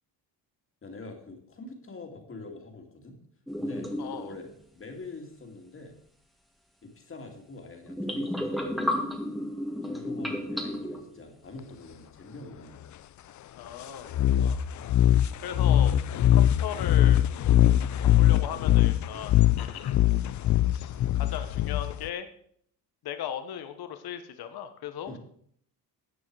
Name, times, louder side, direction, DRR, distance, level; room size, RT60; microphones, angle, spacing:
voice 1, 0.8-3.2 3.6-3.9 4.2-6.0 6.8-9.0 9.8-12.8 25.0-25.2, left 3 dB, 30° left, 3 dB, 2.5 m, -45 dB
sound 1, 3.5-4.4 7.9-11.1, left 1 dB, ahead, 1.7 m, -32 dB
voice 2, 4.0-4.3 13.5-14.1 14.3-14.6 15.4-16.0 16.3-17.2 18.2-20.0 20.7-22.3 23.0-25.2, left 9 dB, 70° left, 9 dB, 1.3 m, -37 dB
sound 2, 14.1-22.1, left 12 dB, 50° left, 0.5 m, -22 dB
14.0 x 8.6 x 4.8 m, 0.63 s
cardioid pair, 125°, 39 cm